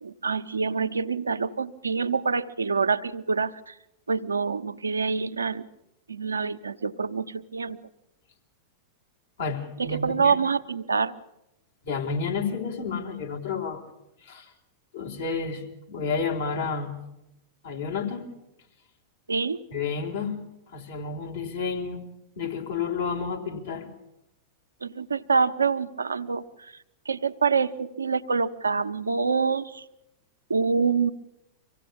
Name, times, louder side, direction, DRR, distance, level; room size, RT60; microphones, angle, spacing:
voice 1, 0.0-3.7 4.1-5.6 6.1-7.8 9.8-11.1 19.3-19.6 24.8-26.7 27.1-29.8 30.5-31.1, right 5 dB, 90° right, 9 dB, 0.8 m, -26 dB
voice 2, 9.4-10.4 11.8-13.8 14.2-14.5 14.9-17.0 17.6-18.3 19.7-20.4 20.7-22.0 22.4-23.9, left 5 dB, 70° left, 1 dB, 3.9 m, -30 dB
25.0 x 17.0 x 8.6 m, 0.89 s
hypercardioid pair, 95°, 0 cm